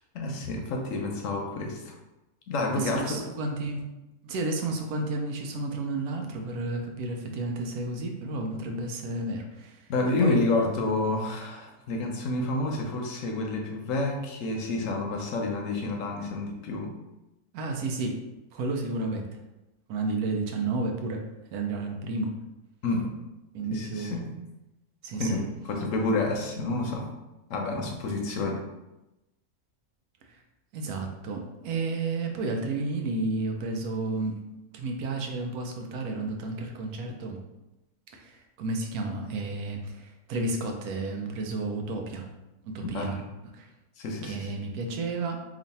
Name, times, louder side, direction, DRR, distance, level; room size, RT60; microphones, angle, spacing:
voice 1, 0.1-1.9 2.5-3.2 9.9-16.9 22.8-23.1 23.7-24.4 25.2-27.1 27.5-28.6 42.9-43.1 44.0-44.4, left 2 dB, 70° left, 1 dB, 0.9 m, -29 dB
voice 2, 2.7-3.8 4.2-9.8 10.2-10.4 17.5-18.2 18.5-19.3 19.9-21.2 21.5-22.3 23.5-24.2 25.0-25.4 30.3-30.4 30.7-34.4 34.7-37.4 38.1-42.3 42.6-43.2 43.5-43.7 44.2-45.4, right 3 dB, 85° right, 3 dB, 1.1 m, -31 dB
3.0 x 2.5 x 4.0 m, 0.98 s
omnidirectional pair, 1.5 m